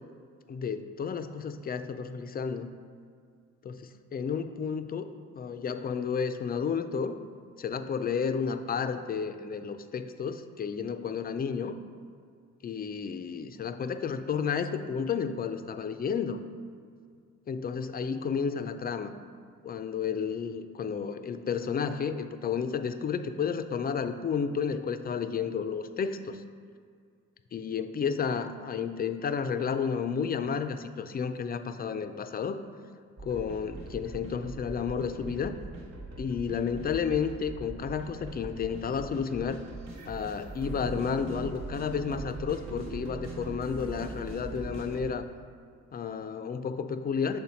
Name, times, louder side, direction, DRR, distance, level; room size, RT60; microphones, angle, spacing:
voice 1, 0.5-2.7 3.6-5.1 5.3-7.2 7.6-11.7 12.6-16.4 17.5-19.1 19.6-26.4 27.5-32.6 33.2-35.6 36.2-39.6 40.1-45.2 45.9-47.4, left 6 dB, 30° left, 10 dB, 0.4 m, -31 dB
sound 1, 33.2-45.1, right 3 dB, 60° right, 1.1 m, -41 dB
6.4 x 4.0 x 4.3 m, 2.2 s
cardioid pair, 90°, 30 cm